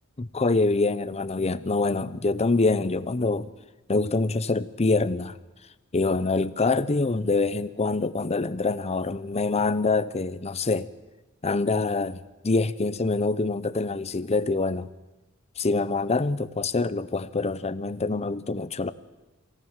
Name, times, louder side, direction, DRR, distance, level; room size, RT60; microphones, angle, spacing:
voice 1, 0.2-3.5 3.9-5.4 5.9-10.9 11.4-14.9 15.6-18.9, left 3 dB, 30° left, 0.7 m, -25 dB
23.5 x 17.0 x 7.4 m
head